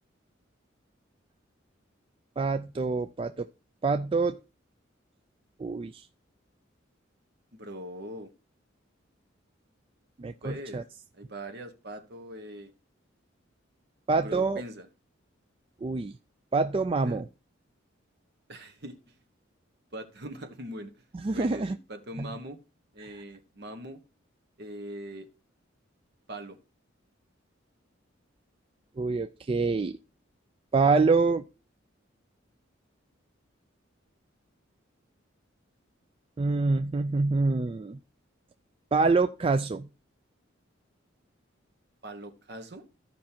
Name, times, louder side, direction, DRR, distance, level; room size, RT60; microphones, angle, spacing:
voice 1, 2.4-3.5 3.8-4.4 5.6-6.1 10.2-10.8 14.1-14.6 15.8-16.1 16.5-17.3 21.1-21.8 22.2-22.3 23.0-23.2 29.0-30.0 30.7-31.4 36.4-38.0 38.9-39.9, right 3 dB, 30° right, 9 dB, 0.4 m, -26 dB
voice 2, 7.5-8.3 10.4-10.8 11.2-12.7 14.2-14.9 17.0-17.2 18.5-19.1 19.9-21.0 21.3-22.6 22.9-24.0 24.6-25.3 26.3-26.6 42.0-42.8, right 1 dB, 60° right, 6 dB, 1.4 m, -41 dB
14.5 x 5.3 x 2.8 m, 0.31 s
head